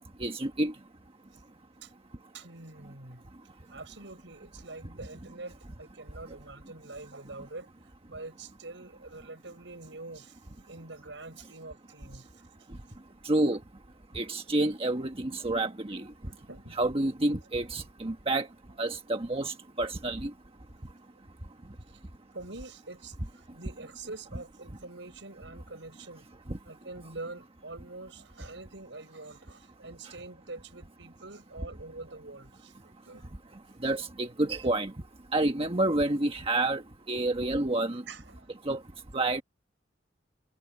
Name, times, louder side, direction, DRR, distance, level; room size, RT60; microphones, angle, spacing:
voice 1, 0.2-0.7 13.2-13.6 14.1-16.1 16.8-18.5 18.8-20.3 33.8-34.9 35.3-36.8 37.1-38.0 38.7-38.8 39.1-39.4, right 2 dB, 30° right, 1.3 m, -28 dB
voice 2, 2.3-3.3 3.7-12.4 16.4-16.7 21.9-22.0 22.3-26.3 26.6-33.3 38.1-38.5, right 3 dB, 75° right, 6.4 m, -45 dB
head